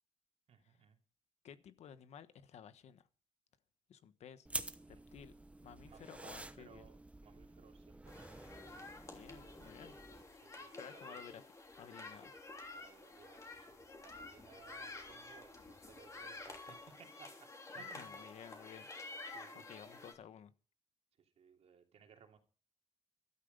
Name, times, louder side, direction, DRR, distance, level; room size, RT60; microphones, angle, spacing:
voice 1, 0.5-1.0 4.9-5.0 5.8-8.3 10.4-11.2 12.8-17.5 17.8-18.2 19.3-19.6 21.2-22.4, right 7 dB, 70° right, 4 dB, 3.0 m, -61 dB
voice 2, 1.4-3.1 3.9-4.5 4.9-5.3 5.6-6.9 9.1-10.0 10.7-11.5 11.8-12.3 17.7-18.9 19.5-20.5, left 8 dB, 80° left, 12 dB, 1.3 m, -55 dB
sound 1, 4.5-10.2, right 2 dB, 10° right, 0.9 m, -49 dB
sound 2, 8.1-20.1, left 3 dB, 25° left, 3.2 m, -51 dB
13.5 x 13.0 x 5.4 m, 0.37 s
wide cardioid pair, 135°, 11 cm